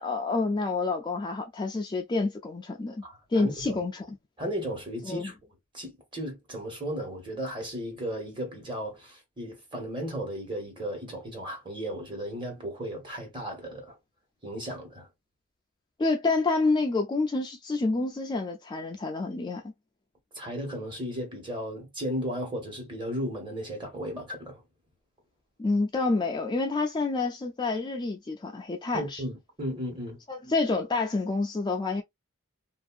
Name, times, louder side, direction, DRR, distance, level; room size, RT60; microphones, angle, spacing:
voice 1, 0.0-3.0 3.3-4.2 5.1-5.3 16.0-19.6 25.6-29.2 30.3-32.0, left 3 dB, 20° left, 0.3 m, -28 dB
voice 2, 3.0-3.8 4.4-5.4 5.7-14.0 14.4-15.1 20.3-24.6 28.9-30.2, equal, 25° right, 1.3 m, -35 dB
2.6 x 2.5 x 2.4 m
head